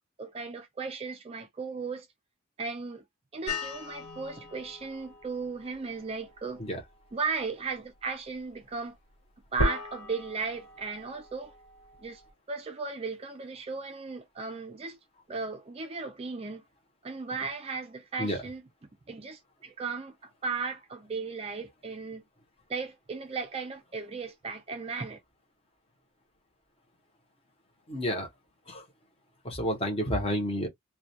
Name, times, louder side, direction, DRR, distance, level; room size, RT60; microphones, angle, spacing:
voice 1, 0.2-2.1 2.6-3.0 3.3-6.6 7.1-8.9 9.5-11.5 12.0-12.2 12.5-15.0 15.3-16.6 17.0-18.6 19.1-22.2 22.7-25.2, right 4 dB, 25° right, 0.3 m, -36 dB
sound 1, 3.5-12.3, left 1 dB, 80° left, 0.9 m, -38 dB
voice 2, 27.9-28.3 28.7-28.8 29.4-30.7, equal, 25° left, 0.7 m, -30 dB
2.2 x 2.2 x 2.6 m
head